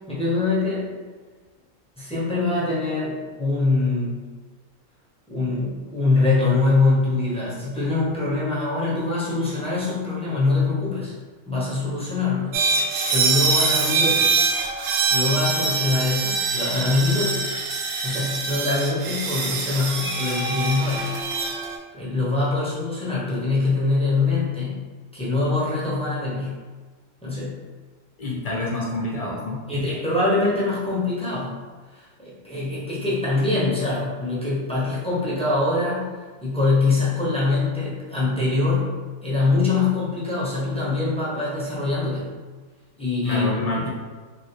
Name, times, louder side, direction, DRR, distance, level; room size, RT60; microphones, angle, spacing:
voice 1, 0.1-0.9 2.0-4.1 5.3-11.1 11.5-12.5 13.1-14.3 15.1-17.5 18.0-21.1 21.9-24.8 25.1-26.6 27.2-27.5 29.7-31.6 31.9-36.1 36.4-38.9 39.2-42.3 43.0-43.9, left 3 dB, 5° left, -8 dB, 0.7 m, -23 dB
sound 1, 12.5-21.8, right 4 dB, 65° right, 0.7 m, -24 dB
voice 2, 28.2-29.6 43.2-43.9, left 2 dB, 45° left, -4 dB, 0.5 m, -27 dB
3.2 x 2.6 x 2.9 m, 1.4 s
omnidirectional pair, 1.4 m